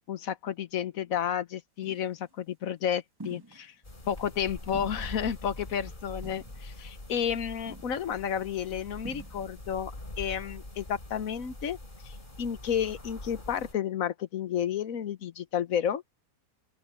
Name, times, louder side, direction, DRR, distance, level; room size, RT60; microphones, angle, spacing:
voice 1, 0.1-3.7 4.1-9.9 10.2-11.8 12.0-16.0, left 8 dB, 60° left, 1.4 m, -31 dB
sound 1, 1.8-2.2 3.2-3.7 4.2-4.3 4.7-5.7 6.2-6.9 7.2-7.4 7.7-8.3 9.0-9.6, right 2 dB, 15° right, 1.5 m, -47 dB
sound 2, 3.8-13.7, left 2 dB, 30° left, 3.7 m, -44 dB
open air
omnidirectional pair, 1.7 m